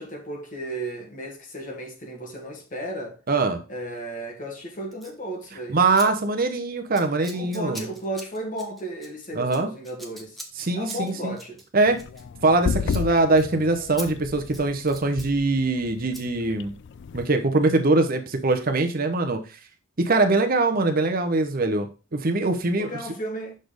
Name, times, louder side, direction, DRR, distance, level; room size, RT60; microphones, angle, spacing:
voice 1, 0.0-3.2 3.7-5.8 7.3-10.4 10.7-11.6 22.8-23.5, right 1 dB, 40° left, 1.8 m, -34 dB
voice 2, 3.3-3.6 5.7-7.9 9.3-9.7 10.6-11.4 11.7-12.0 12.4-16.7 17.1-19.4 20.0-22.9, right 3 dB, 40° right, 0.8 m, -22 dB
Scissors, 4.9-5.2 5.9-6.1 6.3-6.6 6.9-12.6 12.9-13.1 13.4-13.5 14.0-14.1 14.4-15.3 16.1-16.3, right 1 dB, ahead, 0.9 m, -42 dB
sound 1, 11.9-17.3, left 6 dB, 55° left, 0.3 m, -33 dB
6.4 x 4.2 x 5.1 m
head